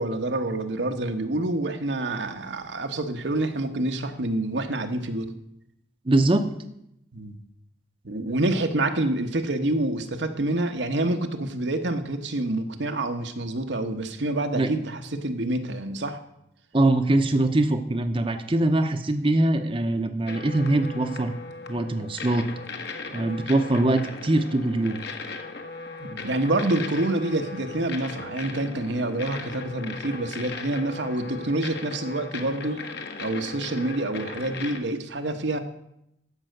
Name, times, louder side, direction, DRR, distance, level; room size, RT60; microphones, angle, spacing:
voice 1, 0.0-5.3 7.1-7.4 8.0-16.2 26.0-32.8 33.2-35.6, right 2 dB, 80° right, 6 dB, 1.2 m, -27 dB
voice 2, 6.0-6.4 14.5-14.7 16.7-21.3 21.7-22.5 23.1-25.0, right 2 dB, 30° right, 7 dB, 0.7 m, -22 dB
sound 1, 20.3-34.8, left 3 dB, 65° left, 1.4 m, -38 dB
13.0 x 5.6 x 7.7 m, 0.80 s
head